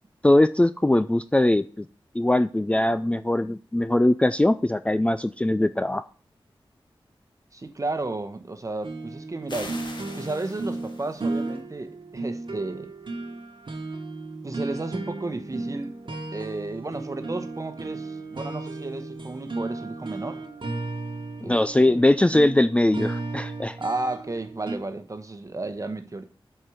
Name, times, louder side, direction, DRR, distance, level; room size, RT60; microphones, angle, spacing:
voice 1, 0.2-1.8 2.1-6.0 21.4-23.8, left 1 dB, 15° left, 0.4 m, -21 dB
voice 2, 7.5-9.8 10.2-12.9 14.4-20.4 21.4-22.0 23.8-26.2, right 2 dB, 35° right, 1.1 m, -33 dB
sound 1, 8.8-24.8, right 2 dB, 60° right, 1.3 m, -35 dB
sound 2, 9.5-11.5, left 2 dB, 55° left, 1.9 m, -42 dB
8.1 x 4.6 x 7.1 m
wide cardioid pair, 80°, 9 cm